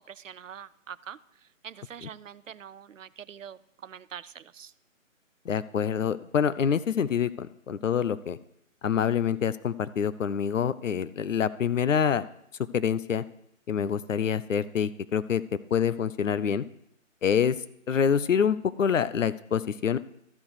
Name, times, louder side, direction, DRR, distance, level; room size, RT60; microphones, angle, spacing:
voice 1, 0.1-4.7, right 8 dB, 70° right, 18 dB, 0.6 m, -44 dB
voice 2, 5.5-8.4 8.8-12.3 12.7-13.2 13.7-15.4 15.7-16.6 17.2-17.6 17.9-20.0, left 7 dB, 70° left, 15 dB, 0.7 m, -26 dB
13.5 x 4.6 x 4.9 m, 0.76 s
figure-of-eight pair, 145°, 40 cm